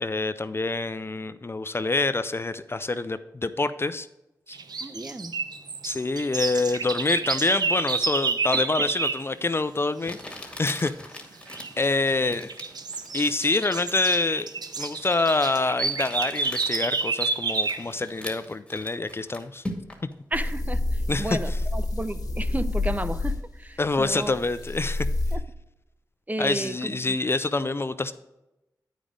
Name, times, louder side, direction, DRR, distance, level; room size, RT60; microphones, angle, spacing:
voice 1, 0.0-4.1 4.5-4.6 5.8-11.1 11.8-12.5 13.1-14.5 14.8-19.6 21.1-21.6 23.8-25.1 26.4-28.1, left 3 dB, 35° left, 13 dB, 0.4 m, -26 dB
sound 1, 4.5-9.3 11.5-11.9 12.3-17.9, right 4 dB, 65° right, 0.7 m, -29 dB
voice 2, 4.8-5.3 8.5-8.9 20.3-24.3 25.3-25.4 26.3-27.2, right 2 dB, 20° right, 12 dB, 0.6 m, -33 dB
Crumpling crinkling, 9.1-9.2 10.0-20.1, left 1 dB, 15° left, 2.0 m, -42 dB
sound 2, 20.3-25.4, left 2 dB, 60° left, 1.4 m, -28 dB
9.0 x 5.1 x 5.0 m, 0.94 s
cardioid pair, 40°, 7 cm